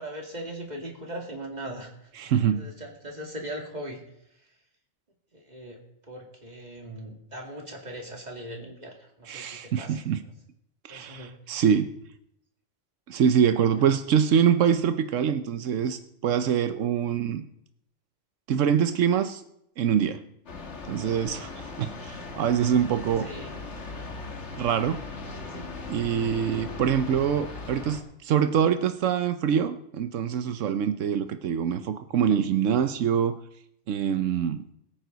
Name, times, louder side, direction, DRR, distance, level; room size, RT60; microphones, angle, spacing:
voice 1, 0.0-1.9 2.2-4.0 5.3-5.8 6.1-10.3 10.9-11.3 23.2-23.5 25.4-25.7, right 1 dB, 35° right, 1 dB, 2.7 m, -39 dB
voice 2, 2.2-2.6 9.3-10.2 10.8-11.9 13.1-17.4 18.5-19.4 19.8-20.2 20.9-23.3 24.6-25.0 25.9-33.4 33.9-34.6, right 8 dB, 90° right, 10 dB, 1.1 m, -24 dB
sound 1, 20.5-28.0, left 3 dB, 65° left, 1.9 m, -39 dB
22.0 x 9.2 x 4.0 m, 0.75 s
omnidirectional pair, 1.3 m